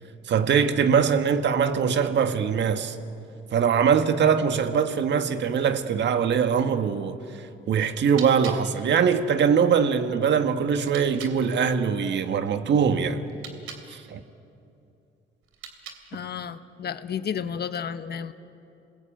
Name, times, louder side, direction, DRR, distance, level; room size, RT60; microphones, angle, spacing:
voice 1, 0.3-3.0 3.5-7.2 7.7-13.2 13.9-14.2, right 7 dB, 65° right, 1.7 m, -22 dB
sound 1, 8.0-11.4 13.2-13.9 15.4-16.3, right 7 dB, 80° right, 3.1 m, -44 dB
voice 2, 16.1-18.3, left 7 dB, 55° left, 1.2 m, -32 dB
28.5 x 21.0 x 9.0 m
cardioid pair, 90°, 20 cm